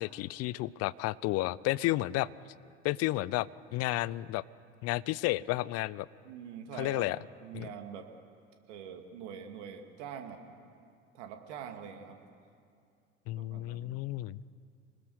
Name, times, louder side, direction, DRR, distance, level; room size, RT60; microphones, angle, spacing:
voice 1, 0.0-2.3 2.8-4.4 4.8-6.1 6.8-7.2 7.5-7.7 13.3-14.4, left 17 dB, 40° left, 20 dB, 0.6 m, -32 dB
voice 2, 6.2-7.1 7.4-8.1 8.7-10.4 11.1-12.2 13.4-13.9, right 8 dB, 60° right, 5 dB, 2.6 m, -44 dB
26.0 x 20.0 x 6.6 m, 2.4 s
figure-of-eight pair, 70°, 38 cm